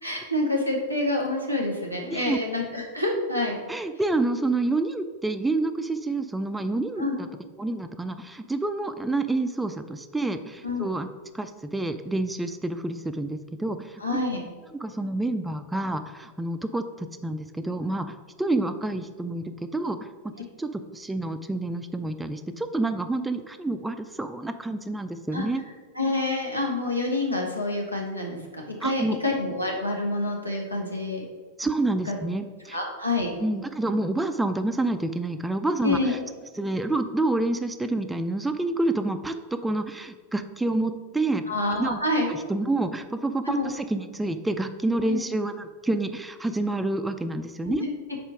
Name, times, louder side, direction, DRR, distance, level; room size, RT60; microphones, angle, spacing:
voice 1, 0.0-3.6 7.0-7.1 10.6-10.9 14.0-14.4 25.3-25.5 25.9-31.2 32.1-32.2 32.7-33.3 35.8-36.1 41.5-42.3 43.4-43.7 45.1-45.2 47.7-47.9, left 2 dB, 85° left, -1 dB, 1.2 m, -27 dB
voice 2, 3.7-7.3 7.6-11.1 11.3-14.2 14.8-18.1 18.4-20.0 20.6-25.6 28.8-29.2 31.6-32.8 33.4-36.2 36.6-41.4 41.7-42.0 42.3-47.8, right 2 dB, 5° right, 8 dB, 0.4 m, -28 dB
5.1 x 4.5 x 4.9 m, 1.4 s
figure-of-eight pair, 90°, 0 cm